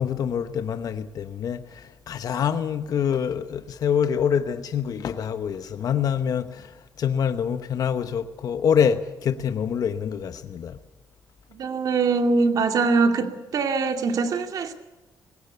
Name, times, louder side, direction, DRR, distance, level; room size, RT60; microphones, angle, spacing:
voice 1, 0.0-10.8, left 8 dB, 65° left, 1.1 m, -26 dB
voice 2, 11.5-13.3 13.5-14.7, right 4 dB, 65° right, 2.5 m, -22 dB
20.5 x 17.5 x 8.2 m
cardioid pair, 85°, 7 cm